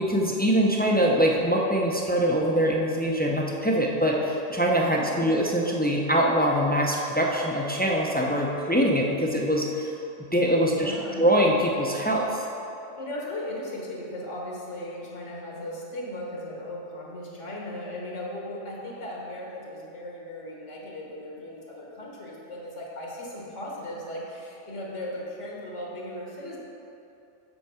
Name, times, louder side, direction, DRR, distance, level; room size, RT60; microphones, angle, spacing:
voice 1, 0.0-9.9 10.3-10.9 11.2-12.4, equal, 15° left, -2 dB, 0.3 m, -23 dB
voice 2, 4.9-5.3 10.7-11.2 13.0-26.6, left 1 dB, 75° left, -4 dB, 1.7 m, -37 dB
8.1 x 4.6 x 5.7 m, 2.8 s
omnidirectional pair, 1.3 m